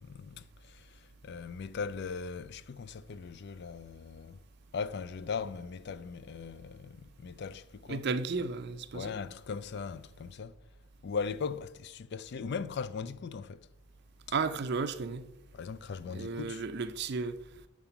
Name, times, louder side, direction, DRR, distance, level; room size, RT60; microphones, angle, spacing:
voice 1, 0.0-4.4 4.7-8.0 8.9-10.6 11.0-13.7 15.5-16.6, left 5 dB, 55° left, 0.4 m, -39 dB
voice 2, 7.9-9.1 14.3-15.3 16.1-17.4, right 4 dB, 50° right, 0.5 m, -33 dB
7.3 x 4.8 x 6.8 m
head